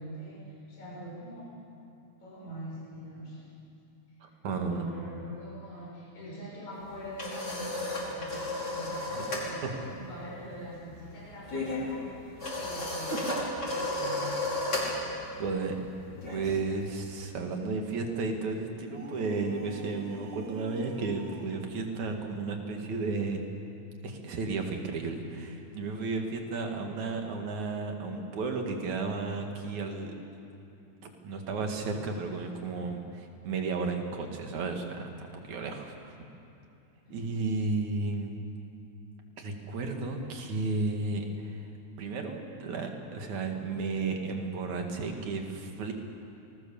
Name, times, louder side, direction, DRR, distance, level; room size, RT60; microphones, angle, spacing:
voice 1, 0.0-1.5 2.2-3.5 4.2-14.3 37.0-37.2, right 1 dB, 75° left, -6 dB, 7.4 m, -43 dB
voice 2, 4.2-4.8 9.6-9.7 15.4-15.8 16.3-23.4 24.0-30.1 31.2-36.3 37.1-38.3 39.4-41.6 42.0-45.9, right 3 dB, 75° right, 3 dB, 3.5 m, -33 dB
sound 1, 6.8-9.5 9.8-10.1 10.3-17.0, left 2 dB, 35° left, 5.9 m, -34 dB
sound 2, 18.8-21.8, equal, 35° right, 1.0 m, -43 dB
29.0 x 20.0 x 7.2 m, 2.7 s
omnidirectional pair, 3.4 m